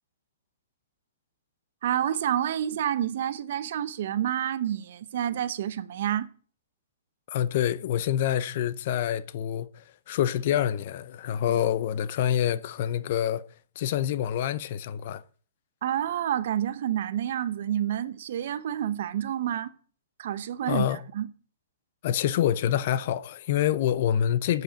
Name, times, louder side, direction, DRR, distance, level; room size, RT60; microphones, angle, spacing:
voice 1, 1.8-6.3 11.5-11.6 15.8-19.7 20.2-21.3, right 10 dB, 55° right, 0.9 m, -29 dB
voice 2, 7.3-13.4 13.8-15.2 20.7-21.0 22.0-24.6, left 10 dB, 45° left, 0.7 m, -26 dB
8.3 x 7.8 x 8.9 m
hypercardioid pair, 165°, 0 cm